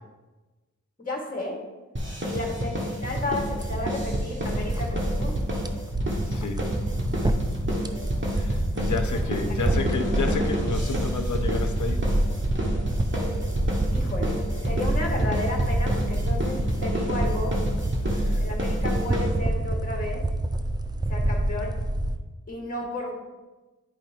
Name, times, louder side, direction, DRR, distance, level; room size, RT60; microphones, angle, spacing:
voice 1, 1.0-1.6 2.2-5.3 13.9-17.6 18.4-20.2 21.1-21.7 22.5-23.1, left 2 dB, 25° left, -1 dB, 1.7 m, -33 dB
sound 1, 2.0-19.7, equal, 35° right, 1.6 m, -30 dB
sound 2, 3.2-22.2, right 1 dB, 15° right, 0.5 m, -27 dB
voice 2, 6.3-6.6 8.3-12.1 18.1-18.4, left 4 dB, 65° left, 6 dB, 0.8 m, -31 dB
10.5 x 5.1 x 2.8 m, 1.2 s
cardioid pair, 45°, 32 cm